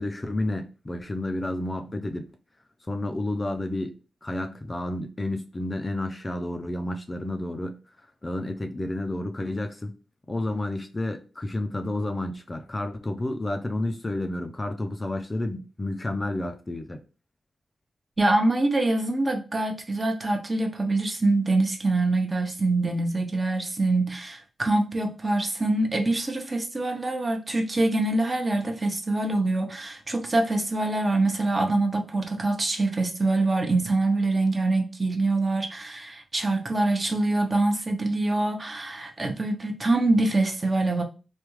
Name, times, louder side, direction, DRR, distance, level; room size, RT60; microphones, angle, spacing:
voice 1, 0.0-2.3 2.9-7.8 8.2-9.9 10.3-17.0, left 1 dB, 25° left, 0.4 m, -30 dB
voice 2, 18.2-41.0, right 2 dB, 30° right, 0.8 m, -25 dB
3.4 x 2.3 x 3.1 m
cardioid pair, 75°, 0 cm